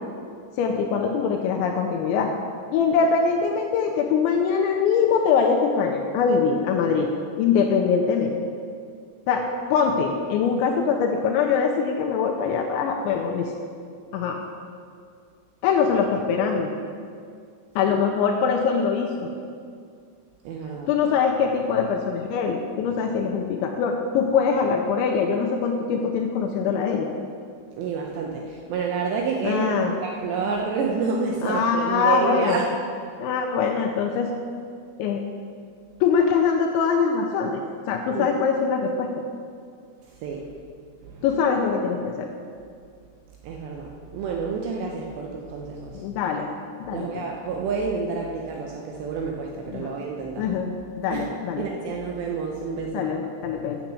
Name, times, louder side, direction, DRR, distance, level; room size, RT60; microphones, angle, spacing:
voice 1, 0.6-2.3 2.7-7.1 7.4-8.3 9.3-13.5 14.1-14.4 15.6-16.7 17.8-19.3 20.9-27.1 29.4-29.9 31.4-32.6 33.2-34.3 35.0-35.2 36.0-39.1 41.2-42.3 45.9-46.5 46.8-47.2 49.7-49.9 50.4-50.7 51.0-51.6 52.9-53.8, left 6 dB, 85° left, 2 dB, 2.7 m, -23 dB
voice 2, 20.5-20.9 27.8-32.7 38.1-38.4 40.2-40.5 41.0-41.2 43.4-46.0 46.9-50.5 51.1-51.3 51.6-53.1, right 5 dB, 80° right, 0 dB, 2.5 m, -29 dB
9.0 x 7.0 x 7.5 m, 2.2 s
omnidirectional pair, 5.8 m